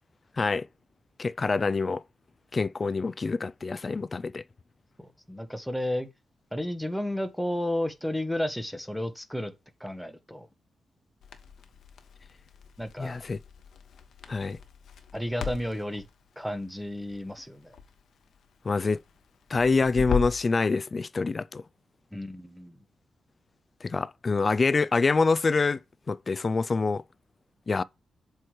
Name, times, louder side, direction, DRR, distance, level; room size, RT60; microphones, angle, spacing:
voice 1, 0.4-0.7 1.2-2.0 2.5-4.4 13.0-13.4 14.3-14.6 18.6-19.0 19.5-21.6 23.8-25.8 26.1-27.0 27.7-27.8, left 4 dB, 30° left, 0.3 m, -26 dB
voice 2, 5.0-6.1 6.5-9.5 9.8-10.5 12.8-13.2 15.1-16.0 16.4-17.8 22.1-22.8, left 1 dB, ahead, 0.9 m, -32 dB
Crackle, 11.2-20.5, left 6 dB, 75° left, 1.0 m, -38 dB
7.6 x 3.2 x 4.6 m
wide cardioid pair, 120°, 0 cm